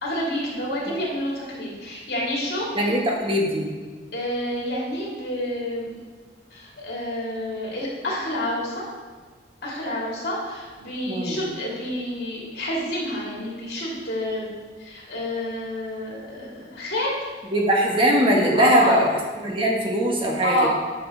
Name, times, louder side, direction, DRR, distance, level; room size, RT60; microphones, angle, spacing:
voice 1, 0.0-2.7 4.1-6.0 6.5-8.8 9.6-17.1 18.5-18.9 20.4-20.7, left 1 dB, 60° left, -4 dB, 2.7 m, -28 dB
voice 2, 2.7-3.7 11.1-11.4 17.5-19.1 19.4-20.7, equal, 30° right, -1 dB, 1.1 m, -21 dB
9.2 x 6.0 x 3.7 m, 1.5 s
head